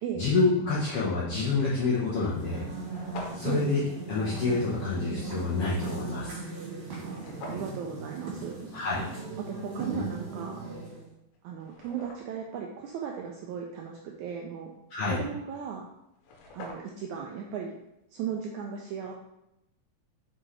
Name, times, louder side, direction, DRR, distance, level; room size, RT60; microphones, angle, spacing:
voice 1, 0.2-2.6 3.3-3.8 4.1-6.3 8.7-9.0 14.9-15.2, left 3 dB, 70° left, -7 dB, 1.5 m, -27 dB
sound 1, 2.2-11.1, right 3 dB, 65° right, 3.4 m, -38 dB
sound 2, 2.8-3.7 7.1-7.8 10.7-10.8 11.3-12.5 15.8-15.9 16.1-17.1, left 2 dB, 85° left, 2.7 m, -44 dB
voice 2, 7.0-8.6 9.4-10.6 11.4-14.7 15.1-15.9 16.5-17.7 18.1-19.1, right 7 dB, 85° right, 1 dB, 1.7 m, -36 dB
6.1 x 5.6 x 3.2 m, 0.86 s
omnidirectional pair, 4.0 m